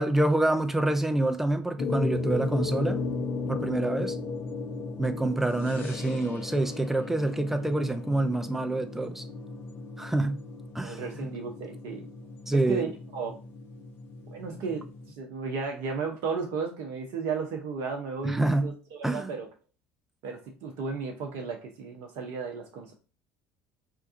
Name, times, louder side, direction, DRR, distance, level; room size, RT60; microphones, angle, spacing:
voice 1, 0.0-3.0 3.5-4.2 5.0-9.2 10.0-10.4 10.7-11.3 12.5-12.8 18.2-18.7 19.0-19.3, right 2 dB, 5° right, 0.6 m, -27 dB
sound 1, 1.8-15.1, left 3 dB, 50° left, 0.7 m, -35 dB
voice 2, 10.8-12.1 12.7-13.3 14.3-14.9 15.2-19.5 20.2-22.9, right 5 dB, 65° right, 0.7 m, -34 dB
4.5 x 2.3 x 2.6 m
hypercardioid pair, 65°, 5 cm